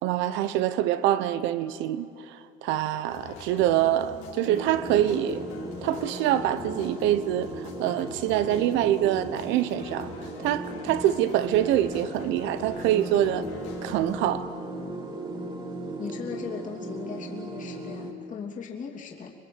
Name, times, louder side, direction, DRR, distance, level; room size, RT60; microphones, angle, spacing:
voice 1, 0.0-2.1 2.6-5.4 5.8-10.1 10.4-13.4 13.8-14.5, right 12 dB, 75° right, 1.1 m, -25 dB
sound 1, 3.1-14.2, left 7 dB, 85° left, 4.0 m, -44 dB
sound 2, 4.4-18.1, right 2 dB, 25° right, 3.0 m, -37 dB
voice 2, 16.0-19.3, left 6 dB, 40° left, 3.0 m, -38 dB
27.0 x 21.0 x 8.0 m
cardioid pair, 110°, 19 cm